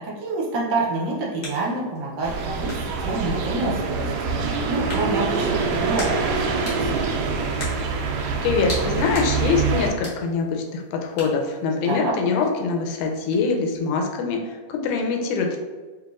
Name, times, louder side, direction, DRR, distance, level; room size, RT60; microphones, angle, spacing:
voice 1, 0.0-7.0 11.9-12.1, right 2 dB, 75° right, -3 dB, 1.9 m, -28 dB
sound 1, 0.8-14.0, left 2 dB, 60° left, 1.0 m, -41 dB
sound 2, 2.2-9.9, right 4 dB, 90° right, 1.6 m, -25 dB
voice 2, 8.4-15.6, left 5 dB, 80° left, 2 dB, 2.1 m, -24 dB
5.8 x 2.9 x 2.4 m, 1.4 s
omnidirectional pair, 3.7 m